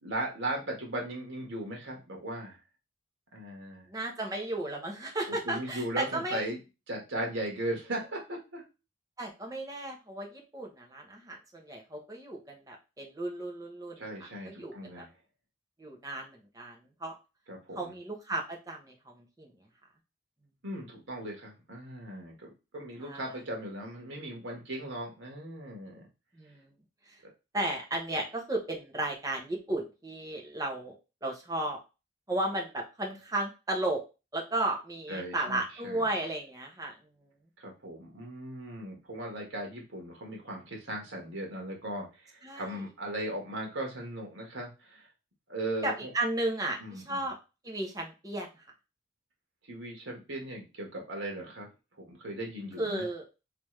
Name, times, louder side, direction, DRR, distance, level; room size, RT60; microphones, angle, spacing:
voice 1, 0.0-2.6 3.3-3.9 5.3-6.6 6.9-8.6 14.0-15.1 17.5-17.9 20.6-26.1 35.1-36.0 37.6-45.1 45.5-46.1 46.8-47.3 49.7-51.7 52.0-53.0, right 1 dB, 85° right, 0 dB, 1.6 m, -38 dB
voice 2, 3.9-6.4 9.2-14.1 14.4-15.0 15.8-17.1 17.7-19.5 23.0-23.3 26.3-26.7 27.5-30.9 31.2-31.8 32.3-34.0 34.3-36.9 42.4-42.8 45.8-47.4 47.6-48.6 52.8-53.3, right 1 dB, 20° right, 0 dB, 0.9 m, -34 dB
3.4 x 3.4 x 3.2 m, 0.28 s
head